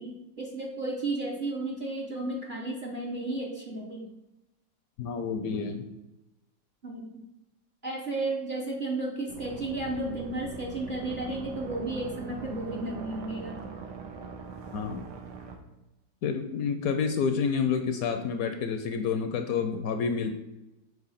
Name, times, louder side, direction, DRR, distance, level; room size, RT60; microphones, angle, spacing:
voice 1, 0.0-4.1 6.8-7.2 7.8-13.6, right 2 dB, 45° right, -1 dB, 0.7 m, -33 dB
voice 2, 5.0-5.9 14.7-15.0 16.2-20.3, left 6 dB, 70° left, 7 dB, 0.9 m, -29 dB
sound 1, 9.3-15.6, right 5 dB, 85° right, 1.4 m, -42 dB
sound 2, 10.4-15.5, right 4 dB, 65° right, 1.1 m, -46 dB
4.8 x 3.9 x 5.6 m, 0.96 s
omnidirectional pair, 1.8 m